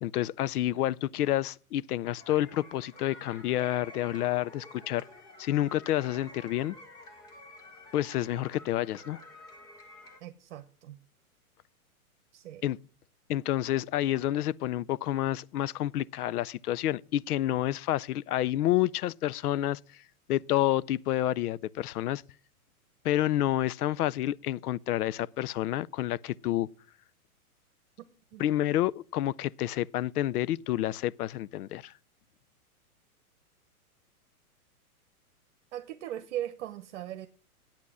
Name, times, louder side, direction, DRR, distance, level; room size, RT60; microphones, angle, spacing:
voice 1, 0.0-5.0 5.4-6.8 7.9-9.2 12.6-12.8 13.3-19.8 20.3-22.2 23.0-26.7 28.4-31.9, left 13 dB, 80° left, 0.5 m, -29 dB
sound 1, 2.2-10.2, left 2 dB, 10° left, 0.4 m, -50 dB
voice 2, 10.2-11.0 12.3-12.6 28.3-28.5 35.7-37.3, right 12 dB, 50° right, 0.9 m, -39 dB
8.6 x 8.3 x 6.1 m
hypercardioid pair, 145°, 44 cm